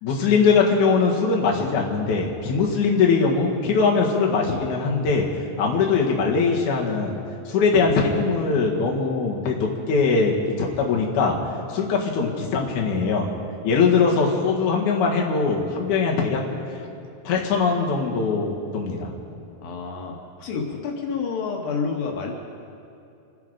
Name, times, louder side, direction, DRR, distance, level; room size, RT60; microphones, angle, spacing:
voice 1, 0.0-5.3 5.6-7.2 7.5-11.4 11.7-13.3 13.6-16.4 17.2-19.1, left 4 dB, 65° left, -2 dB, 3.1 m, -21 dB
voice 2, 19.6-22.3, left 5 dB, 85° left, 0 dB, 3.3 m, -29 dB
27.0 x 10.5 x 5.1 m, 2.7 s
omnidirectional pair, 4.0 m